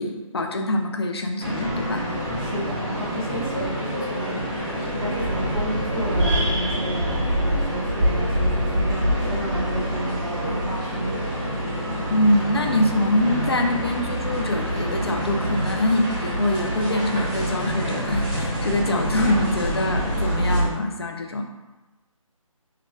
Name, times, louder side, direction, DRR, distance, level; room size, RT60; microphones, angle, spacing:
voice 1, 0.0-2.0 12.1-21.4, left 1 dB, 45° left, 4 dB, 0.5 m, -24 dB
sound 1, 1.4-20.7, equal, 15° right, 0.8 m, -26 dB
voice 2, 2.3-4.4 4.9-11.3, right 1 dB, 45° right, -6 dB, 1.2 m, -31 dB
6.4 x 2.4 x 2.3 m, 1.1 s
figure-of-eight pair, 170°, 18 cm